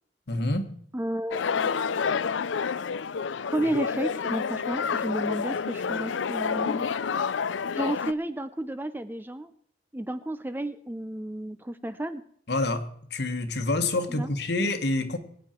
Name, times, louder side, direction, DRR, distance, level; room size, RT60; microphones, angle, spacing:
voice 1, 0.3-0.7 12.5-15.2, left 2 dB, 60° left, 8 dB, 1.5 m, -27 dB
voice 2, 0.9-1.7 3.5-6.9 7.7-9.5 9.9-12.2 14.1-14.3, right 1 dB, 10° right, 12 dB, 0.5 m, -32 dB
sound 1, 1.3-8.1, left 6 dB, 80° left, 0.5 m, -29 dB
22.0 x 9.2 x 4.4 m, 0.64 s
head